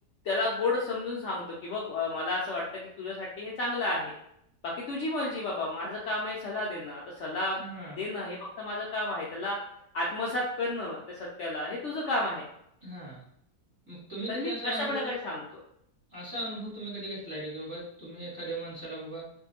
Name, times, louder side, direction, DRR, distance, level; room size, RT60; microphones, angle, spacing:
voice 1, 0.2-4.2 4.6-7.6 7.9-9.6 9.9-12.5 14.3-15.4, left 2 dB, 85° left, -4 dB, 0.6 m, -32 dB
voice 2, 7.6-8.0 12.8-13.2 13.9-15.1 16.1-19.4, right 1 dB, 15° right, -11 dB, 1.2 m, -38 dB
2.7 x 2.6 x 2.7 m, 0.72 s
omnidirectional pair, 1.8 m